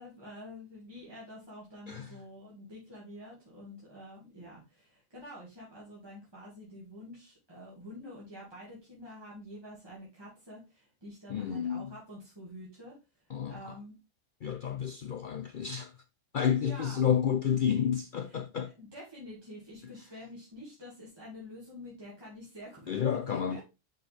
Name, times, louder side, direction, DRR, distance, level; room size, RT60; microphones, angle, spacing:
voice 1, 0.0-14.0 16.6-17.1 18.3-18.4 18.8-22.9 23.3-23.6, left 1 dB, 20° right, 2.4 m, -48 dB
voice 2, 11.3-11.9 13.3-13.7 14.4-15.9 16.3-18.7 22.9-23.6, left 8 dB, 70° left, 0.5 m, -30 dB
5.8 x 5.1 x 3.5 m
omnidirectional pair, 1.4 m